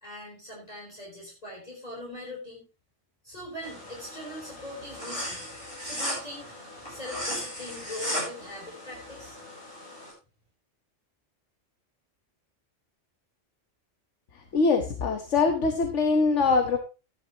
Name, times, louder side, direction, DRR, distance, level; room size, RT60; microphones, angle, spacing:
voice 1, 0.0-2.7 3.2-5.5 5.8-6.5 6.9-9.4, left 1 dB, 30° left, -3 dB, 4.0 m, -41 dB
sound 1, 3.6-10.1, equal, 50° left, 8.1 m, -37 dB
voice 2, 14.5-16.8, left 4 dB, 75° left, 5 dB, 1.5 m, -23 dB
13.5 x 11.0 x 2.9 m, 0.31 s
omnidirectional pair, 1.3 m